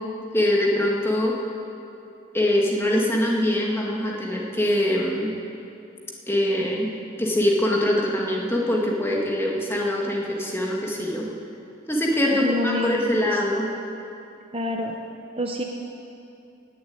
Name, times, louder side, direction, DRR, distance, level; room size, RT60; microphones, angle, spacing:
voice 1, 0.3-1.3 2.3-5.3 6.3-6.9 7.2-11.3 11.9-13.7, left 1 dB, 10° left, -2 dB, 2.0 m, -23 dB
voice 2, 12.3-13.4 14.5-15.0 15.4-15.6, left 1 dB, 30° right, 2 dB, 0.9 m, -28 dB
18.5 x 7.5 x 8.8 m, 2.7 s
head